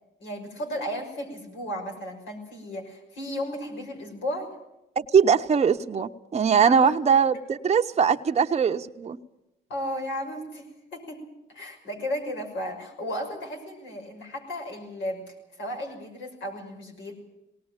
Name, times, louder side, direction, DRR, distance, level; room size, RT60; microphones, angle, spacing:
voice 1, 0.2-4.5 6.6-6.9 9.7-10.7 10.9-11.2 11.5-17.2, equal, 75° left, 3 dB, 6.0 m, -34 dB
voice 2, 5.0-9.2, right 6 dB, 35° right, 5 dB, 0.9 m, -21 dB
19.0 x 18.5 x 8.9 m, 0.92 s
cardioid pair, 90°, 20 cm